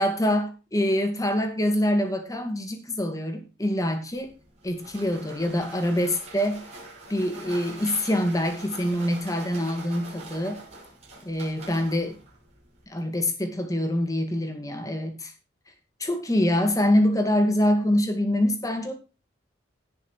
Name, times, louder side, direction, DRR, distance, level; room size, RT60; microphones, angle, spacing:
voice 1, 0.0-4.3 4.6-6.6 7.1-10.6 11.2-12.2 12.9-15.3 16.0-18.9, left 1 dB, 20° left, 6 dB, 2.0 m, -25 dB
sound 1, 4.1-12.8, right 2 dB, 35° right, 5.2 m, -44 dB
17.0 x 5.9 x 4.6 m, 0.30 s
head